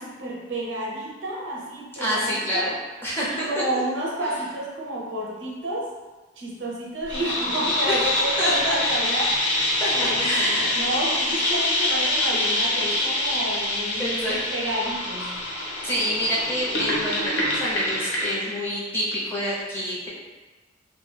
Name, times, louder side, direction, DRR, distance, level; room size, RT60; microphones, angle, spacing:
voice 1, 0.0-2.7 3.3-5.9 6.4-9.4 9.9-15.4, right 1 dB, 75° right, -3 dB, 0.6 m, -30 dB
voice 2, 2.0-3.6 7.9-8.1 8.4-8.8 9.8-10.8 14.0-14.4 15.8-20.1, equal, 10° left, -8 dB, 0.6 m, -27 dB
fidget spinner night effect, 7.1-18.6, left 1 dB, 70° left, 0.6 m, -25 dB
2.5 x 2.1 x 3.2 m, 1.3 s
head